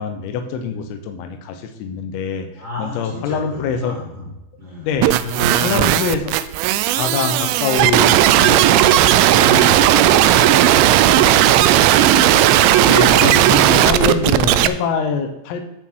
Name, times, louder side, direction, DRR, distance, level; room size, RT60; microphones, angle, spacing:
voice 1, 0.0-2.5 2.8-4.0 4.9-5.2 5.5-6.3 6.9-10.4 12.9-15.6, left 6 dB, 90° left, 6 dB, 3.6 m, -24 dB
voice 2, 2.5-4.3 4.6-4.9 5.2-5.9 11.1-12.5, left 2 dB, 20° right, -5 dB, 3.1 m, -32 dB
sound 1, 5.0-14.7, right 12 dB, 85° right, 2.8 m, -14 dB
13.5 x 6.0 x 4.6 m, 0.95 s
omnidirectional pair, 5.8 m